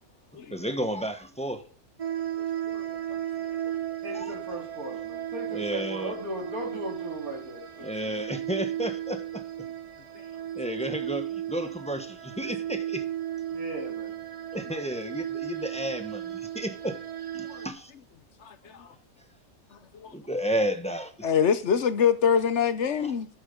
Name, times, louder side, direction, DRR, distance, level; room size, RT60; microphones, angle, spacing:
voice 1, 0.5-1.6 4.1-4.3 5.5-6.1 7.8-9.4 10.5-13.0 14.5-17.0 17.3-17.9 20.1-21.3, right 1 dB, 5° left, 1.1 m, -32 dB
sound 1, 2.0-17.7, right 11 dB, 35° right, 0.6 m, -35 dB
voice 2, 4.0-7.9 13.5-14.2, right 1 dB, 85° right, 4.1 m, -37 dB
voice 3, 18.4-18.9 19.7-20.2 21.2-23.3, left 7 dB, 60° left, 1.0 m, -25 dB
11.0 x 9.2 x 3.9 m
omnidirectional pair, 1.5 m